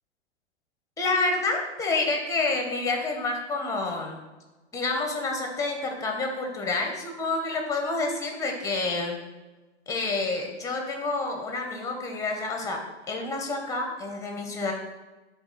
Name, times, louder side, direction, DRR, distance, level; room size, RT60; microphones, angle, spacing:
voice 1, 1.0-4.2 4.7-9.2 9.9-12.8 13.1-14.7, left 3 dB, 10° left, 2 dB, 1.3 m, -28 dB
11.0 x 4.0 x 4.3 m, 1.2 s
hypercardioid pair, 120°, 36 cm